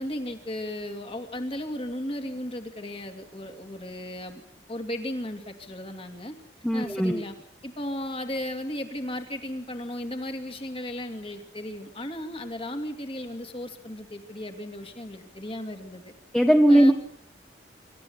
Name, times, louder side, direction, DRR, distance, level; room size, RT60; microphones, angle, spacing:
voice 1, 0.0-4.4 4.7-6.3 6.7-7.3 7.6-16.1 16.7-16.9, left 1 dB, 30° left, 6 dB, 2.5 m, -35 dB
voice 2, 6.6-7.2 16.3-16.9, right 1 dB, 5° left, 3 dB, 1.3 m, -18 dB
26.5 x 13.5 x 8.2 m, 0.69 s
head